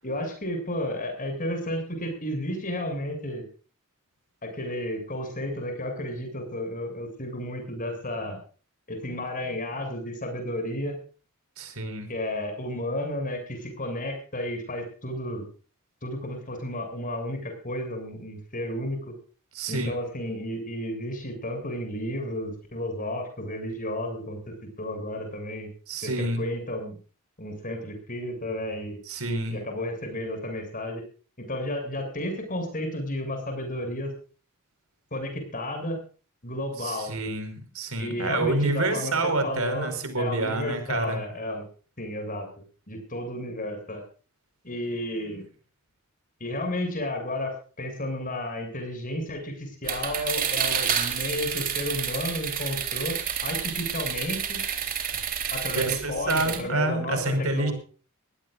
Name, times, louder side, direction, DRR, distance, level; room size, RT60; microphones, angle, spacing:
voice 1, 0.0-3.5 4.4-8.4 8.9-11.0 12.1-15.5 16.0-19.1 19.7-25.7 26.0-27.0 27.4-29.0 29.5-31.0 31.4-34.1 35.1-36.0 36.4-37.1 38.0-39.1 39.4-41.6 42.0-42.5 42.9-44.0 44.6-45.5 46.4-54.6 55.5-57.7, left 1 dB, 40° left, 6 dB, 7.5 m, -32 dB
voice 2, 11.6-12.1 19.5-19.9 25.9-26.4 29.1-29.6 36.8-41.2 55.7-57.7, right 2 dB, 70° right, 8 dB, 5.3 m, -28 dB
sound 1, 49.8-56.6, right 8 dB, 40° right, 3.8 m, -29 dB
22.5 x 18.0 x 2.6 m, 0.38 s
head